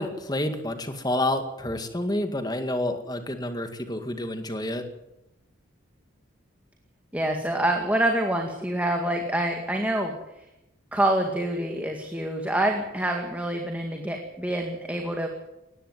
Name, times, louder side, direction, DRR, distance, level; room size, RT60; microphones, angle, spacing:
voice 1, 0.0-4.9, left 1 dB, 20° left, 7 dB, 2.0 m, -29 dB
voice 2, 7.1-10.1 10.9-15.3, right 1 dB, 5° right, 2 dB, 2.0 m, -26 dB
19.5 x 15.0 x 9.4 m, 0.90 s
head